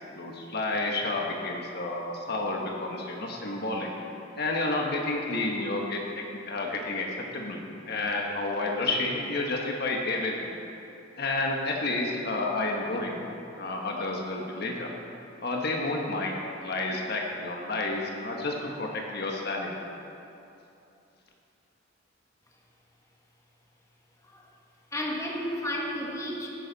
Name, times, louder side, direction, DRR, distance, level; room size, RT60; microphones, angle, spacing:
voice 1, 0.1-3.9 4.3-7.1 7.3-7.6 7.9-10.5 11.2-13.2 13.6-14.9 15.4-16.3 16.6-19.7, left 2 dB, 55° left, 0 dB, 1.3 m, -30 dB
voice 2, 24.9-26.5, equal, 15° left, -2 dB, 1.4 m, -32 dB
15.0 x 9.9 x 4.0 m, 2.8 s
head